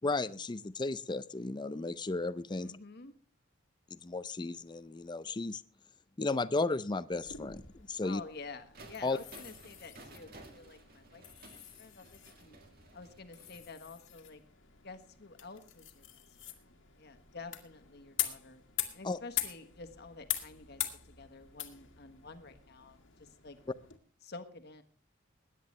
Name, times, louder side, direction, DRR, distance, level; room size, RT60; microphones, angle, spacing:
voice 1, 0.0-2.7 3.9-5.6 6.2-8.2 9.0-9.2 19.0-19.2, left 3 dB, 25° left, 0.5 m, -34 dB
voice 2, 2.6-3.1 8.0-11.2 11.8-12.6 12.9-14.4 14.8-16.0 16.5-16.6 17.0-18.6 18.9-23.6 24.2-24.8, left 3 dB, 55° left, 1.4 m, -49 dB
sound 1, 7.1-24.0, left 13 dB, 75° left, 1.8 m, -43 dB
sound 2, 8.7-13.6, right 2 dB, 50° right, 2.0 m, -55 dB
21.0 x 10.0 x 3.2 m
head